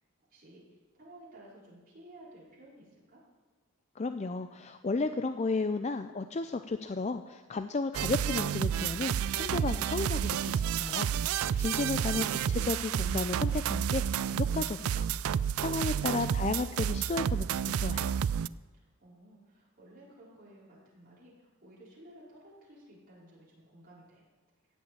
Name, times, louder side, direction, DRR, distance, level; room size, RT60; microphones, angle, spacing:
voice 1, 0.3-0.7 1.0-3.2 18.7-24.2, right 1 dB, 45° right, -6 dB, 4.7 m, -55 dB
voice 2, 4.0-18.1, left 3 dB, 30° left, 8 dB, 0.4 m, -34 dB
sound 1, 7.9-18.5, right 8 dB, 90° right, 0.3 m, -30 dB
15.5 x 5.5 x 8.9 m, 1.3 s
head